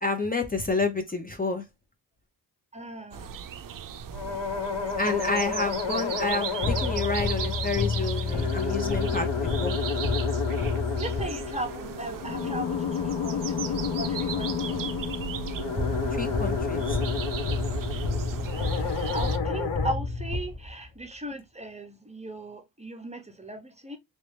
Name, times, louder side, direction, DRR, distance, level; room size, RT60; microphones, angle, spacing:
voice 1, 0.0-1.6 5.0-9.8 16.1-17.0, left 3 dB, 20° left, 0.8 m, -29 dB
voice 2, 2.7-3.4 10.9-14.9 18.6-24.0, right 1 dB, 15° right, 0.9 m, -38 dB
sound 1, 3.1-19.4, right 8 dB, 50° right, 0.5 m, -37 dB
sound 2, 4.1-19.9, left 5 dB, 75° left, 1.1 m, -31 dB
sound 3, 6.6-11.7 15.8-21.0, left 4 dB, 40° left, 1.3 m, -30 dB
3.2 x 2.8 x 3.3 m
cardioid pair, 65°, 43 cm